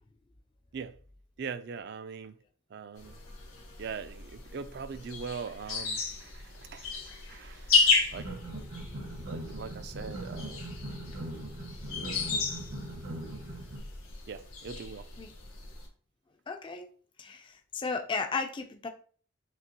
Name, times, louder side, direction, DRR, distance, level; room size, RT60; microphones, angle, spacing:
voice 1, 1.4-2.4 2.7-3.2 3.8-8.3 9.2-10.7 11.9-12.3 14.3-15.1, right 5 dB, 50° right, 0.3 m, -42 dB
sound 1, 3.0-15.9, left 4 dB, 90° left, 1.6 m, -33 dB
sound 2, 8.1-13.8, right 1 dB, 85° right, 1.5 m, -40 dB
voice 2, 16.5-16.9 17.2-18.9, left 4 dB, 25° left, 0.3 m, -34 dB
6.1 x 2.9 x 2.8 m
head